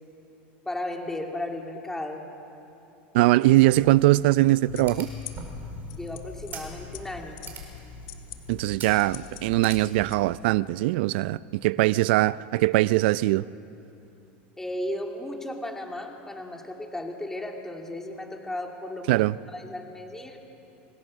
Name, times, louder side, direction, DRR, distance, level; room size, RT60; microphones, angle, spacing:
voice 1, 0.7-2.2 5.9-7.4 14.6-20.4, left 1 dB, 5° left, 2 dB, 2.5 m, -35 dB
voice 2, 3.1-5.1 8.5-13.4 19.1-19.3, right 18 dB, 75° right, 19 dB, 0.5 m, -21 dB
sound 1, 3.5-10.1, right 6 dB, 35° right, 4.6 m, -44 dB
sound 2, 4.7-10.2, left 10 dB, 60° left, 1.8 m, -42 dB
26.0 x 19.5 x 6.4 m, 2.9 s
supercardioid pair, 115°, 6 cm